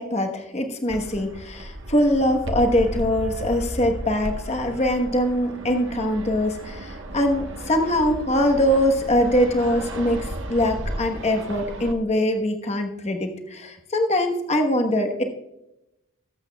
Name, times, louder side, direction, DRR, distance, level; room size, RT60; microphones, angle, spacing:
voice 1, 0.0-15.2, left 1 dB, 30° left, 4 dB, 1.1 m, -23 dB
Fixed-wing aircraft airplane, 0.9-11.9, right 1 dB, 55° right, 1.2 m, -34 dB
20.0 x 8.1 x 2.3 m, 0.88 s
head